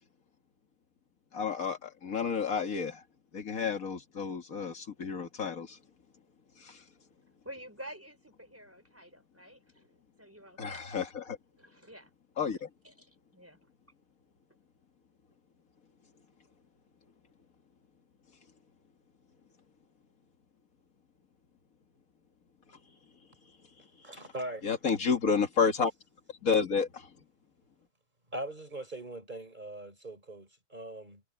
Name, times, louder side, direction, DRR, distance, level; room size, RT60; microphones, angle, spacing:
voice 1, 1.3-3.0 3.3-5.8 6.6-6.8 10.6-11.4 12.4-12.7 24.6-25.9 26.4-27.1, left 5 dB, 85° left, 2.3 m, -30 dB
voice 2, 7.4-11.0 11.6-12.1 12.8-13.6, right 1 dB, 10° right, 5.3 m, -49 dB
voice 3, 24.0-24.7 28.3-31.2, right 1 dB, 35° right, 5.0 m, -41 dB
omnidirectional pair, 1.4 m